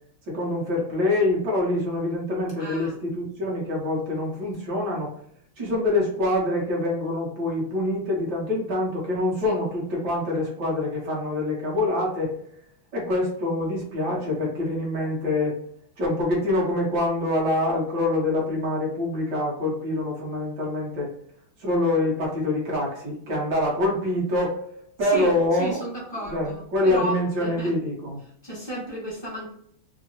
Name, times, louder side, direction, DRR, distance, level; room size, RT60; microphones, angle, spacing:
voice 1, 0.3-5.1 5.6-12.3 12.9-15.6 16.0-21.1 21.6-24.6 25.0-25.9 26.2-28.2, left 1 dB, 60° right, -3 dB, 1.4 m, -25 dB
voice 2, 2.6-2.9 9.4-9.5 25.1-25.3 25.6-27.7 28.4-29.5, right 1 dB, 25° left, -6 dB, 0.6 m, -33 dB
3.7 x 2.0 x 2.6 m, 0.67 s
omnidirectional pair, 2.2 m